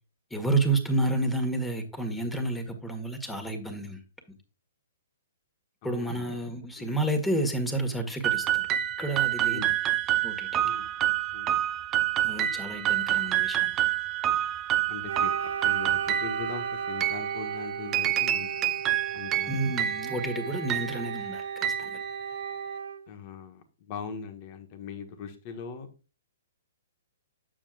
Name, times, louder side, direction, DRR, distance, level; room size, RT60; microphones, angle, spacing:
voice 1, 0.3-4.0 5.8-8.7 9.0-9.7 10.2-10.6 12.2-13.7 19.5-22.0, right 2 dB, 5° left, 1.6 m, -30 dB
voice 2, 5.8-6.4 6.8-6.9 9.5-9.7 10.6-10.9 11.3-11.6 14.9-18.5 19.1-19.9 23.1-25.9, left 6 dB, 40° left, 1.4 m, -41 dB
sound 1, 8.2-22.7, right 12 dB, 25° right, 0.5 m, -28 dB
Wind instrument woodwind instrument, 15.0-23.1, right 7 dB, 75° right, 0.4 m, -35 dB
8.8 x 7.4 x 2.5 m
hypercardioid pair, 125°, 0 cm